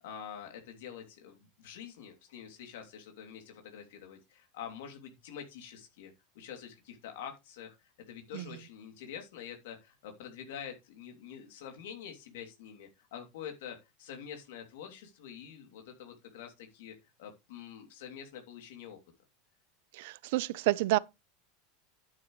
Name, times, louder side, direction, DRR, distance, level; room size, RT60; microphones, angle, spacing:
voice 1, 0.0-7.8 8.1-19.0, left 8 dB, 80° left, 2.9 m, -46 dB
voice 2, 19.9-21.0, right 18 dB, 70° right, 0.7 m, -29 dB
9.9 x 9.4 x 3.2 m
supercardioid pair, 130°, 0 cm